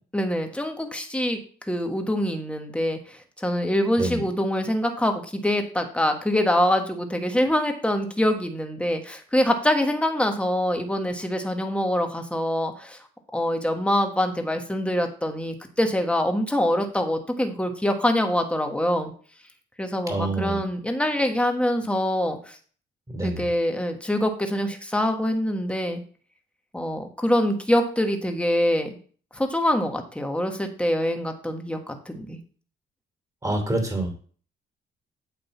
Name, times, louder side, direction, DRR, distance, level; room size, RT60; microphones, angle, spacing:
voice 1, 0.1-1.4 1.7-3.0 3.4-13.0 13.3-19.1 19.8-22.6 23.2-26.0 26.7-28.9 29.3-32.4, left 1 dB, 5° left, 4 dB, 1.4 m, -24 dB
voice 2, 20.1-20.6 23.1-23.4 33.4-34.1, right 2 dB, 15° right, 3 dB, 2.8 m, -26 dB
9.1 x 3.8 x 7.1 m, 0.44 s
cardioid pair, 90°, 20 cm